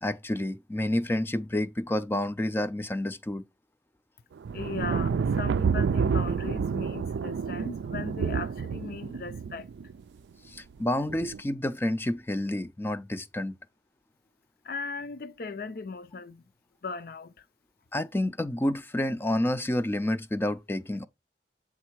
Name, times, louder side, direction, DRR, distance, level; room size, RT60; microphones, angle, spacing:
voice 1, 0.0-3.4 10.5-13.6 17.9-21.1, left 1 dB, 15° left, 0.4 m, -29 dB
sound 1, 4.4-9.9 11.1-11.4, right 6 dB, 80° right, 0.3 m, -29 dB
voice 2, 4.5-9.7 14.6-16.4 16.8-17.3, left 4 dB, 55° left, 0.6 m, -38 dB
8.4 x 3.5 x 4.6 m
head